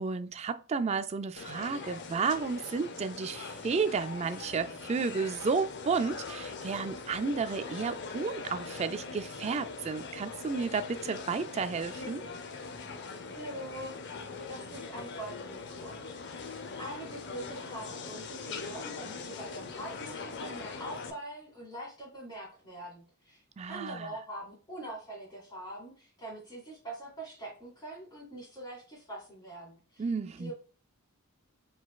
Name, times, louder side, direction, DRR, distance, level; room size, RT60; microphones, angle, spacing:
voice 1, 0.0-12.2 23.6-24.1 30.0-30.5, right 5 dB, 30° right, 0.3 m, -32 dB
sound 1, 1.4-21.1, left 4 dB, 55° left, 0.6 m, -42 dB
voice 2, 13.3-16.0 16.8-30.1 30.4-30.5, right 1 dB, 20° left, 2.1 m, -44 dB
4.9 x 3.9 x 2.3 m
head